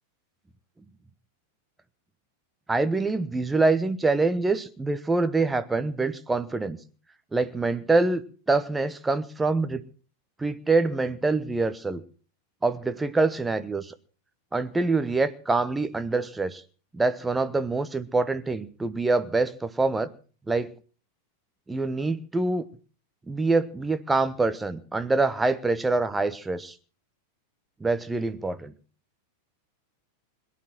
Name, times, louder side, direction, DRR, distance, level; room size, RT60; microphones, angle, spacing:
voice 1, 2.7-6.8 7.3-8.2 8.5-9.8 10.4-12.0 12.6-13.9 14.5-16.6 16.9-20.1 20.5-20.7 21.7-22.6 23.3-26.7 27.8-28.7, right 3 dB, 10° right, 1.1 m, -25 dB
22.0 x 10.0 x 6.1 m
figure-of-eight pair, 90°, 0 cm